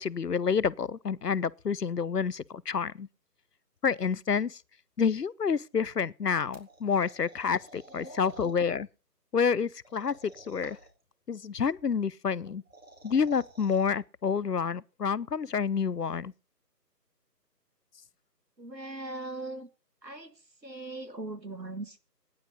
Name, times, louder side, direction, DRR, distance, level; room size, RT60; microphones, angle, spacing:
voice 1, 0.0-3.1 3.8-4.6 5.0-8.9 9.3-10.8 11.3-12.6 13.0-16.3, left 6 dB, 70° left, 0.7 m, -28 dB
sound 1, 6.5-8.5 9.8-11.0 12.5-13.9, right 2 dB, 50° right, 4.2 m, -52 dB
voice 2, 7.9-8.4 18.6-19.7 20.0-20.3 20.6-22.0, right 2 dB, 90° right, 2.5 m, -40 dB
15.5 x 10.0 x 5.4 m
figure-of-eight pair, 165°, 49 cm